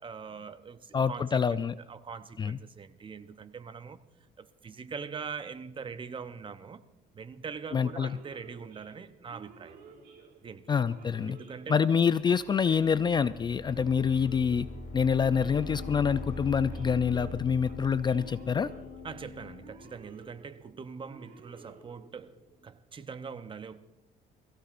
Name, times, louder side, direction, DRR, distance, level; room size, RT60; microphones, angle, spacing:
voice 1, 0.0-1.5 1.9-4.0 4.4-6.8 7.1-9.8 10.4-10.7 11.3-11.8 19.0-23.8, right 6 dB, 30° right, 0.8 m, -42 dB
voice 2, 0.9-1.7 2.4-2.6 7.7-8.1 10.7-11.4 11.7-14.7 14.9-18.7, left 6 dB, 25° left, 0.4 m, -26 dB
Male speech man speaking / Siren, 7.8-22.5, right 5 dB, 70° right, 3.4 m, -54 dB
sound 1, 12.4-20.0, left 1 dB, 55° left, 6.3 m, -43 dB
sound 2, 15.6-20.2 20.6-20.7, left 15 dB, 85° left, 0.8 m, -47 dB
22.0 x 15.5 x 2.6 m
cardioid pair, 110°, 17 cm